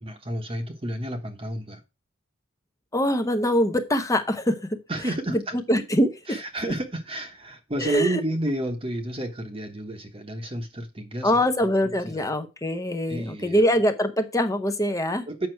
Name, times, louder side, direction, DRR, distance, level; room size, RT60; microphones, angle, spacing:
voice 1, 0.0-1.8 4.9-5.6 6.3-11.5 11.8-12.3 13.1-13.6 15.3-15.5, right 1 dB, 25° right, 1.1 m, -31 dB
voice 2, 2.9-4.8 5.3-5.4 5.7-6.4 7.8-8.2 11.2-15.2, equal, 15° left, 0.8 m, -23 dB
7.9 x 6.0 x 4.5 m
head